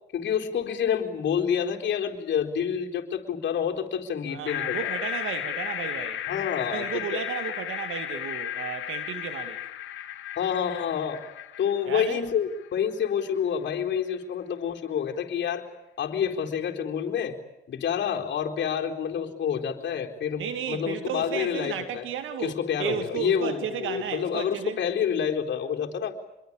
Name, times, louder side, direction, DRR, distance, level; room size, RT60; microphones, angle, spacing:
voice 1, 0.1-4.9 6.3-7.2 10.4-11.2 11.6-15.7 16.0-17.4 17.7-20.4 20.7-22.0 22.4-26.2, left 8 dB, 65° left, 4.2 m, -28 dB
voice 2, 4.3-6.2 6.7-9.6 11.8-12.2 20.4-24.8, right 8 dB, 80° right, 2.2 m, -33 dB
sound 1, 4.5-12.7, left 12 dB, 80° left, 2.4 m, -34 dB
27.0 x 22.5 x 8.9 m
cardioid pair, 90°, 20 cm